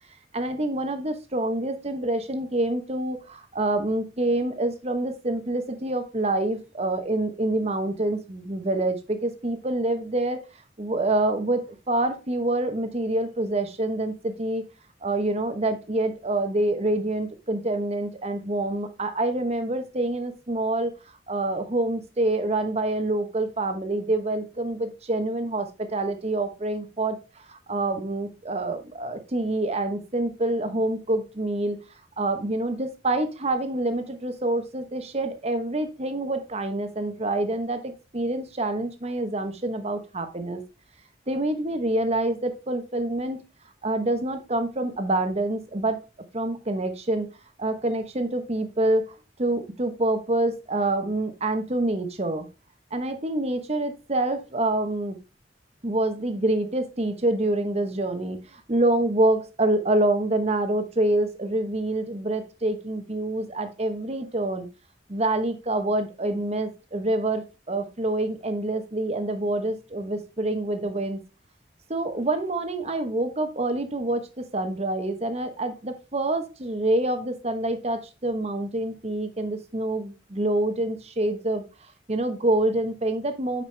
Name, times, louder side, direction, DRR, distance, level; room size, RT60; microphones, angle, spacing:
voice 1, 0.3-10.4 10.8-14.7 15.0-20.9 21.3-31.8 32.2-40.6 41.3-43.4 43.8-46.0 46.3-47.3 47.6-49.0 49.4-52.5 52.9-55.2 55.8-64.7 65.1-71.2 71.9-81.6 82.1-83.6, right 2 dB, 35° right, 8 dB, 1.0 m, -26 dB
9.3 x 5.0 x 3.3 m, 0.29 s
head